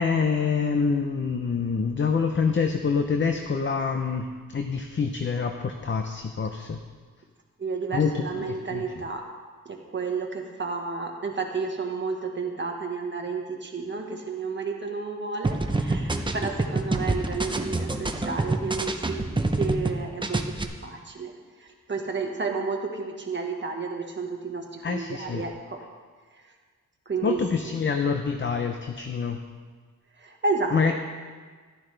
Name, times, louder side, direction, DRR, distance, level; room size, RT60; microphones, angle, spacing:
voice 1, 0.0-4.3 4.5-6.8 7.9-8.8 24.8-25.4 27.2-29.4 30.7-30.9, left 5 dB, 35° left, 5 dB, 0.6 m, -26 dB
voice 2, 7.6-9.2 9.6-19.2 19.6-21.3 21.6-25.8 27.1-27.7 30.2-30.9, right 4 dB, 35° right, 1 dB, 1.5 m, -31 dB
sound 1, 15.4-19.9 20.2-20.6, right 2 dB, 15° right, 0.7 m, -26 dB
14.0 x 12.0 x 3.4 m, 1.5 s
wide cardioid pair, 130°, 34 cm